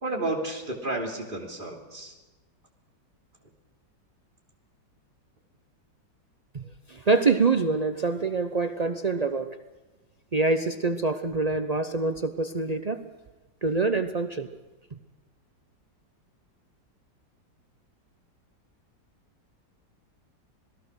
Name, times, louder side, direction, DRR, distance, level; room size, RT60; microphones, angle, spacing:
voice 1, 0.0-2.1, right 2 dB, 25° right, 1 dB, 3.1 m, -31 dB
voice 2, 6.9-9.6 10.3-13.0 13.6-14.5 14.9-15.0, right 3 dB, 80° right, 9 dB, 0.3 m, -25 dB
26.5 x 19.0 x 6.4 m, 1.1 s
omnidirectional pair, 2.0 m